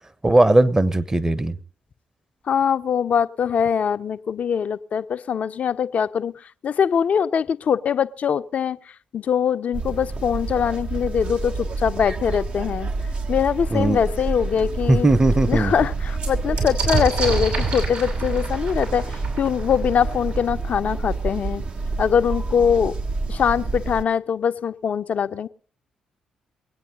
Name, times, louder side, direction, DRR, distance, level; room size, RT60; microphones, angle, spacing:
voice 1, 0.2-1.6 13.7-14.0 14.9-15.7, right 2 dB, 20° right, 16 dB, 1.1 m, -18 dB
voice 2, 2.5-6.3 6.6-8.8 9.1-12.9 13.3-15.1 15.5-21.6 22.0-22.9 23.3-25.5, left 7 dB, 50° left, 12 dB, 0.6 m, -22 dB
sound 1, 9.7-24.0, right 3 dB, 45° right, 1.0 m, -28 dB
sound 2, 14.2-14.3 14.7-14.8 15.1-20.6 21.6-21.7 21.9-22.6, right 4 dB, 70° right, 6.2 m, -29 dB
22.0 x 9.1 x 5.3 m, 0.43 s
figure-of-eight pair, 40°, 3 cm